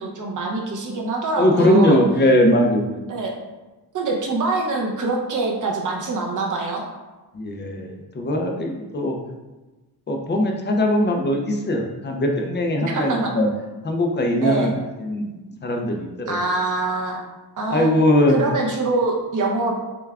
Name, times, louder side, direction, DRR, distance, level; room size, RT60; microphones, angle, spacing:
voice 1, 0.0-2.0 3.1-3.3 3.9-6.8 12.9-13.3 14.4-14.7 16.3-17.2 17.6-17.9 18.3-19.7, right 3 dB, 45° right, 0 dB, 0.7 m, -24 dB
voice 2, 1.4-3.0 7.3-9.2 10.1-13.5 13.8-14.7 15.0-15.3 15.6-16.4 17.7-18.4, left 1 dB, 25° left, 2 dB, 0.4 m, -20 dB
6.7 x 2.2 x 2.3 m, 1.1 s
wide cardioid pair, 145°, 43 cm